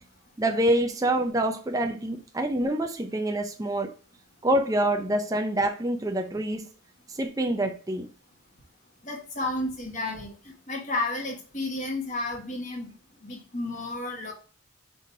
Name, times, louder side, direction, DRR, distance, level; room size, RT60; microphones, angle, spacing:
voice 1, 0.4-3.9 4.4-6.7 7.1-8.1, right 1 dB, 15° right, 0.4 m, -26 dB
voice 2, 9.0-10.3 10.7-12.9 13.2-14.3, left 2 dB, 35° left, 1.3 m, -32 dB
5.1 x 3.8 x 2.7 m
head